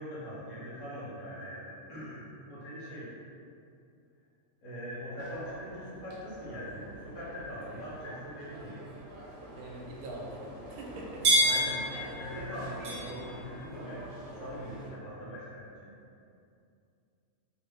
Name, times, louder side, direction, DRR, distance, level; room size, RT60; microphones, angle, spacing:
voice 1, 0.0-3.1 4.6-8.8 9.2-9.5 11.4-14.0 14.3-15.9, equal, 75° left, -9 dB, 1.5 m, -42 dB
sound 1, 5.2-14.9, right 1 dB, 60° right, 1.0 m, -35 dB
voice 2, 9.5-11.5, right 1 dB, 85° right, -2 dB, 1.1 m, -43 dB
3.0 x 2.7 x 3.4 m, 2.5 s
omnidirectional pair, 1.5 m